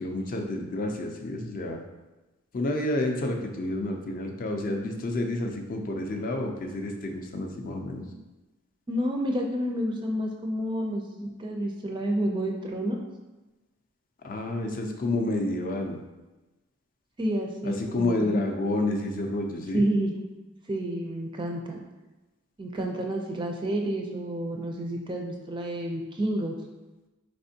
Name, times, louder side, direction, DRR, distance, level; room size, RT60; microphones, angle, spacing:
voice 1, 0.0-1.8 2.5-8.0 14.2-16.0 17.6-19.9, left 2 dB, 40° left, 3 dB, 0.4 m, -29 dB
voice 2, 8.9-13.0 17.2-18.4 19.7-20.2 20.7-21.8 22.6-26.6, right 1 dB, 20° right, 1 dB, 0.4 m, -29 dB
4.3 x 3.3 x 2.7 m, 1.1 s
head